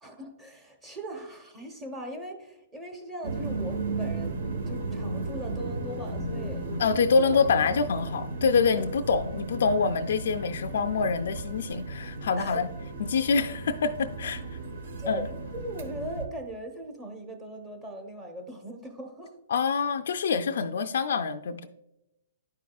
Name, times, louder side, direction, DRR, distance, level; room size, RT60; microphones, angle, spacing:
voice 1, 0.0-6.7 7.2-7.8 8.8-8.9 12.4-12.6 15.0-15.2 15.5-19.3, right 1 dB, 20° right, 3 dB, 0.9 m, -39 dB
sound 1, 3.2-16.2, right 2 dB, 75° right, 1.1 m, -35 dB
voice 2, 6.8-12.7 13.0-14.6 15.1-15.3 19.5-21.7, left 5 dB, 70° left, 7 dB, 0.3 m, -26 dB
10.5 x 4.7 x 2.3 m, 0.91 s
hypercardioid pair, 140°, 0 cm